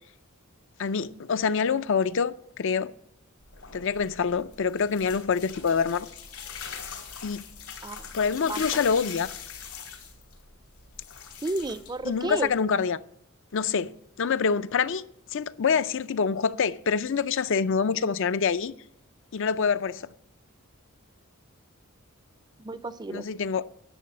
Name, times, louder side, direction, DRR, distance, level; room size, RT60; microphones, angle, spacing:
voice 1, 0.8-2.9 3.7-6.1 7.2-7.5 8.1-9.3 12.1-13.0 13.5-15.0 15.3-18.7 19.3-20.1 23.1-23.6, left 6 dB, 60° left, 0.5 m, -26 dB
sound 1, 3.4-12.6, left 6 dB, 85° left, 3.1 m, -42 dB
voice 2, 8.5-8.8 11.4-12.5 22.6-23.3, right 2 dB, 20° right, 0.5 m, -32 dB
11.0 x 7.4 x 8.5 m
head